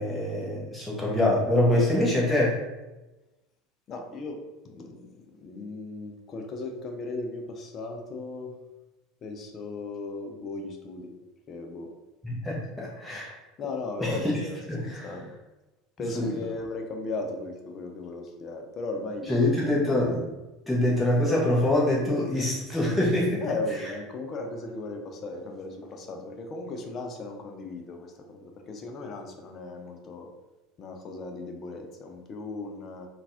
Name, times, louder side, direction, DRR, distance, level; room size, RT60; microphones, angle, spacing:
voice 1, 0.0-2.6 12.2-13.3 14.0-14.4 14.7-15.1 16.1-16.3 19.3-20.3 20.7-23.4, left 1 dB, 5° left, -5 dB, 0.9 m, -25 dB
voice 2, 3.9-8.6 9.2-11.1 11.5-11.9 13.1-13.2 13.6-15.3 16.0-19.4 23.4-30.3 30.8-33.1, left 2 dB, 35° left, 4 dB, 0.5 m, -37 dB
3.9 x 2.4 x 2.7 m, 1.1 s
figure-of-eight pair, 70°, 0 cm